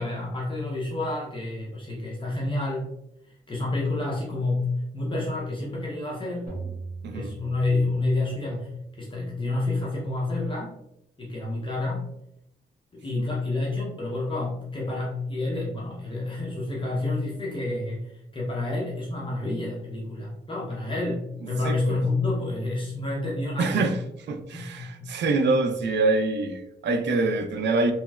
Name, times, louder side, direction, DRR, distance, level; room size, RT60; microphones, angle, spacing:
voice 1, 0.0-2.9 3.2-6.5 7.1-10.7 11.2-12.1 12.9-23.9 24.5-25.1, left 2 dB, 25° left, -4 dB, 0.6 m, -29 dB
sound 1, 6.5-8.4, right 4 dB, 45° right, 1.4 m, -39 dB
voice 2, 21.6-22.0 23.6-24.0 24.3-27.9, right 3 dB, 70° right, 6 dB, 0.4 m, -25 dB
3.2 x 2.9 x 2.3 m, 0.83 s
wide cardioid pair, 130°, 19 cm